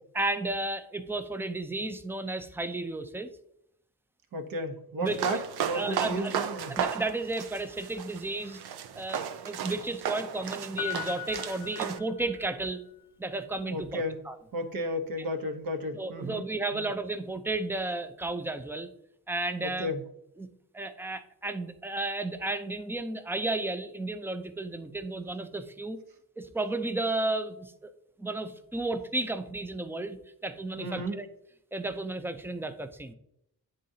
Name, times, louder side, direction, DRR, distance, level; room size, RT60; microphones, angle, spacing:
voice 1, 0.1-3.3 5.0-5.4 5.7-8.6 9.0-12.8 13.2-14.4 15.9-18.9 19.3-19.9 20.4-20.5 20.7-26.0 26.4-27.9 28.2-30.2 30.4-31.3 31.7-33.1, right 2 dB, 5° right, 9 dB, 0.4 m, -33 dB
voice 2, 4.3-6.7 13.7-14.2 14.5-16.4 16.7-16.9 19.6-20.0 30.8-31.2, equal, 60° right, 6 dB, 1.0 m, -33 dB
sound 1, 5.1-12.0, right 8 dB, 75° right, 0.6 m, -35 dB
Piano, 10.8-12.6 12.9-13.0, left 15 dB, 80° left, 0.6 m, -39 dB
9.9 x 3.8 x 2.7 m, 0.78 s
cardioid pair, 115°, 38 cm